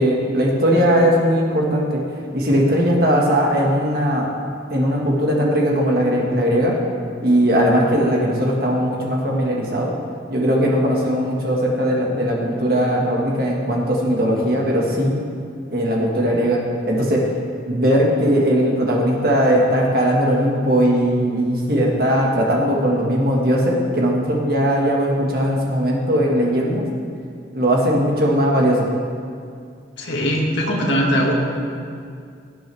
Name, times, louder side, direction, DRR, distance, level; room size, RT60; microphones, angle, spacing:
voice 1, 0.0-2.0 2.3-4.3 4.7-6.8 7.2-9.9 10.3-15.1 15.7-17.3 17.7-26.9 27.5-28.9, equal, 55° right, -2 dB, 1.8 m, -19 dB
voice 2, 30.0-31.3, equal, 85° left, -2 dB, 2.0 m, -20 dB
17.5 x 7.8 x 3.5 m, 2.3 s
head